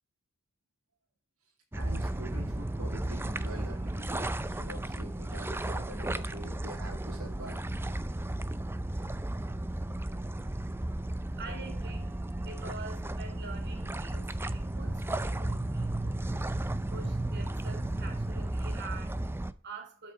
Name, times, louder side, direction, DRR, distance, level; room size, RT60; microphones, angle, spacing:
sound 1, 1.7-19.5, right 1 dB, 10° right, 0.6 m, -34 dB
voice 1, 1.7-7.6, right 1 dB, 65° right, 2.4 m, -45 dB
voice 2, 11.3-20.1, right 3 dB, 50° right, 3.0 m, -47 dB
12.5 x 5.9 x 4.9 m
head